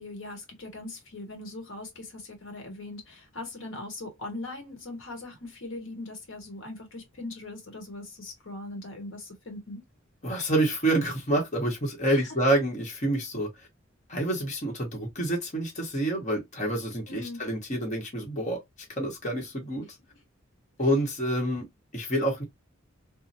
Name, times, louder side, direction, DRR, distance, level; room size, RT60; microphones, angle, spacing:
voice 1, 0.0-9.8 12.1-12.3 17.1-17.4, left 2 dB, 70° left, 1.0 m, -40 dB
voice 2, 10.2-13.7 14.1-18.6 19.0-20.0 20.8-21.6 21.9-22.4, right 1 dB, 40° left, 1.0 m, -27 dB
3.1 x 2.1 x 2.6 m
head